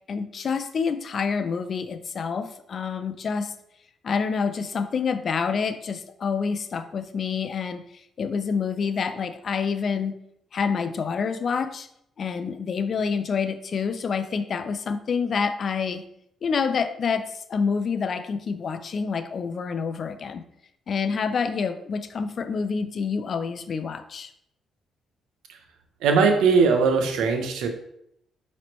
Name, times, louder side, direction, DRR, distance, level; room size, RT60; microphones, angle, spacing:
voice 1, 0.1-3.5 4.0-7.9 8.2-10.2 10.5-11.9 12.2-16.1 16.4-20.5 20.9-24.3, left 5 dB, 50° left, 11 dB, 0.4 m, -27 dB
voice 2, 26.0-27.7, right 5 dB, 85° right, 5 dB, 0.7 m, -20 dB
5.0 x 3.1 x 3.0 m, 0.73 s
cardioid pair, 90°, 0 cm